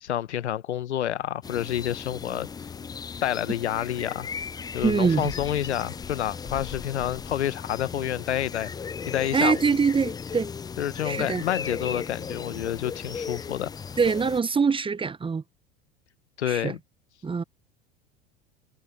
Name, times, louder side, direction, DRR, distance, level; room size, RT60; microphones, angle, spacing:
voice 1, 0.0-2.5 3.2-4.3 4.7-8.7 9.1-9.6 10.8-13.7 16.4-16.8, left 11 dB, 85° left, 1.0 m, -28 dB
sound 1, 1.4-14.4, left 6 dB, 10° left, 0.4 m, -37 dB
voice 2, 4.8-5.3 9.3-10.5 11.0-11.4 14.0-15.4 16.5-16.7 17.2-17.4, right 5 dB, 15° right, 0.8 m, -24 dB
hypercardioid pair, 85°, 33 cm